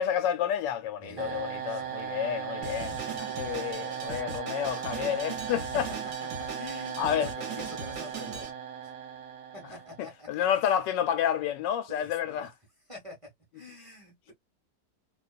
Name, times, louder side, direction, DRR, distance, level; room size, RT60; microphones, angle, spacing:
voice 1, 0.0-2.9 3.4-5.9 7.0-7.3 10.0-12.5, left 9 dB, 90° left, 1.3 m, -29 dB
voice 2, 1.0-1.9 2.9-4.0 5.5-8.9 9.5-10.8 11.9-12.5 12.9-14.3, left 1 dB, 20° right, 1.1 m, -47 dB
sound 1, 1.2-10.1, right 8 dB, 75° right, 1.2 m, -37 dB
Drum kit, 2.6-8.5, right 5 dB, 50° right, 1.0 m, -40 dB
2.8 x 2.3 x 2.3 m
omnidirectional pair, 1.9 m